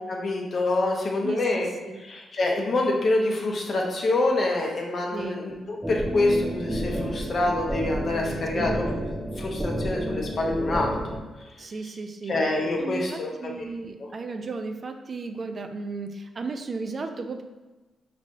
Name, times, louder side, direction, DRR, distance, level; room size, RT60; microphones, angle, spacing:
voice 1, 0.1-1.7 2.1-8.9 9.4-10.9 12.3-13.5, left 2 dB, 55° left, -1 dB, 0.9 m, -26 dB
voice 2, 1.2-2.0 5.1-5.5 8.5-8.8 11.6-12.4 12.8-17.4, right 3 dB, 45° right, 5 dB, 0.4 m, -35 dB
sound 1, 5.8-11.2, equal, 15° right, 0.9 m, -30 dB
5.2 x 3.3 x 2.6 m, 1.1 s
supercardioid pair, 60°, 0 cm